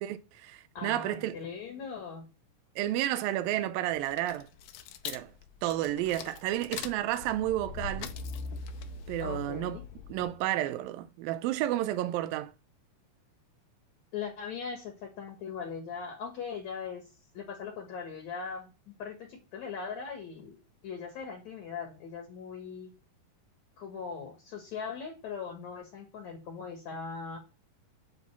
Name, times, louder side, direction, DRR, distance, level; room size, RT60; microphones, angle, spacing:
voice 1, 0.0-1.3 2.8-4.5 5.1-5.3 5.6-8.1 9.1-9.8 10.1-12.5, right 13 dB, 85° right, 2.4 m, -31 dB
voice 2, 0.7-2.2 9.2-9.8 14.1-17.1 17.3-18.7 19.0-20.6 20.8-22.9 23.8-27.4, left 6 dB, 60° left, 2.4 m, -40 dB
sound 1, 3.9-10.5, left 5 dB, 80° left, 2.1 m, -41 dB
9.7 x 4.0 x 6.9 m
omnidirectional pair, 4.1 m